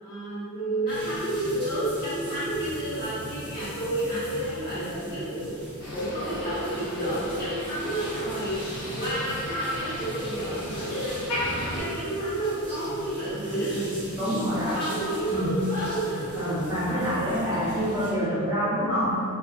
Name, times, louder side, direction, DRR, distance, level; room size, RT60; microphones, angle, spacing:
voice 1, 0.0-5.5 5.9-8.6 8.9-14.1 14.6-16.4 16.8-17.0, right 1 dB, 40° left, -13 dB, 1.1 m, -30 dB
sound 1, 0.9-18.1, equal, 25° left, 0.8 m, -41 dB
Motor vehicle (road), 5.8-11.8, left 1 dB, 75° left, 0.8 m, -36 dB
voice 2, 14.2-14.8 15.3-15.6 16.3-19.2, equal, 15° right, -10 dB, 0.3 m, -26 dB
2.4 x 2.2 x 2.3 m, 2.5 s
head